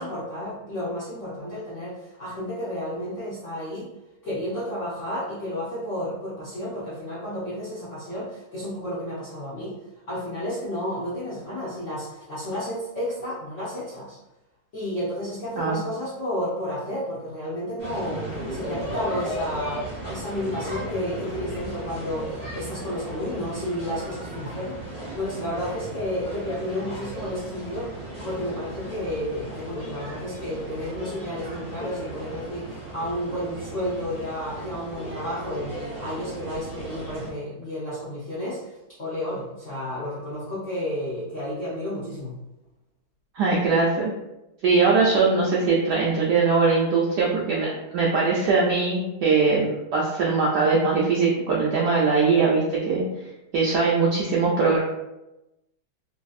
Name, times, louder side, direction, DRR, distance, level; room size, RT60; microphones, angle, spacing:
voice 1, 0.0-3.9 4.2-9.8 10.1-14.2 14.7-19.8 20.1-24.8 25.1-27.9 28.2-42.4, left 1 dB, 65° left, -10 dB, 0.7 m, -31 dB
sound 1, 17.8-37.3, right 1 dB, 10° left, 0.7 m, -36 dB
voice 2, 43.3-44.1 44.6-47.7 47.9-53.0 53.5-54.8, right 4 dB, 80° right, -4 dB, 0.9 m, -21 dB
3.3 x 2.6 x 2.3 m, 0.96 s
omnidirectional pair, 2.3 m